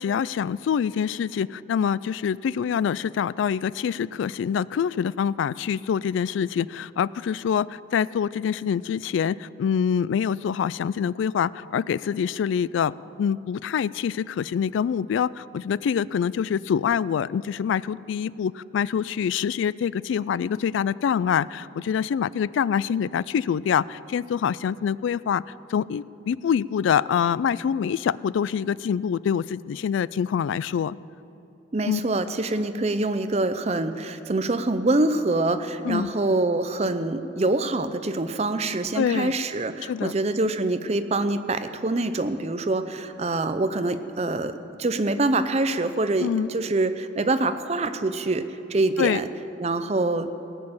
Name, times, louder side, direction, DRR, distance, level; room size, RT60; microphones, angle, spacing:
voice 1, 0.0-12.9 13.2-25.4 25.7-31.0 31.9-32.0 35.8-36.1 38.9-39.3 39.8-40.1 46.2-46.5 49.0-49.2, left 7 dB, 85° left, 20 dB, 0.3 m, -25 dB
voice 2, 31.7-48.4 48.7-49.3 49.6-50.3, right 2 dB, 35° right, 10 dB, 0.6 m, -25 dB
18.0 x 6.6 x 8.7 m, 3.0 s
head